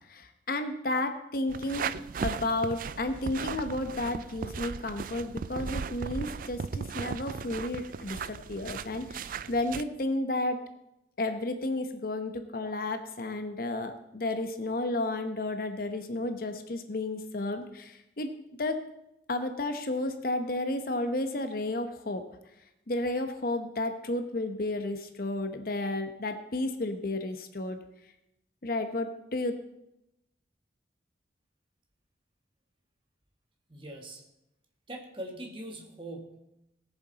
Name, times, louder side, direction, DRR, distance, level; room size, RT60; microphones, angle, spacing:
voice 1, 0.1-1.9 2.2-10.6 11.2-18.3 18.6-18.8 19.3-22.2 22.9-27.8 28.6-29.6, left 2 dB, 50° left, 8 dB, 0.9 m, -32 dB
sound 1, 1.5-9.8, right 6 dB, 45° right, 0.3 m, -37 dB
voice 2, 33.7-34.2 34.9-36.4, right 1 dB, 25° right, 2 dB, 1.6 m, -41 dB
19.0 x 7.1 x 4.0 m, 0.84 s
head